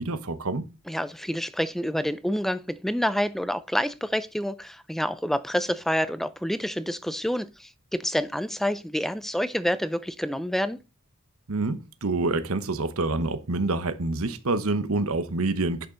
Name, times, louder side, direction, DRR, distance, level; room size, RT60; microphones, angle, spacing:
voice 1, 0.0-0.7 11.5-15.9, right 2 dB, 80° right, 1.0 m, -27 dB
voice 2, 0.9-10.8, equal, ahead, 0.4 m, -28 dB
11.0 x 5.8 x 3.9 m
head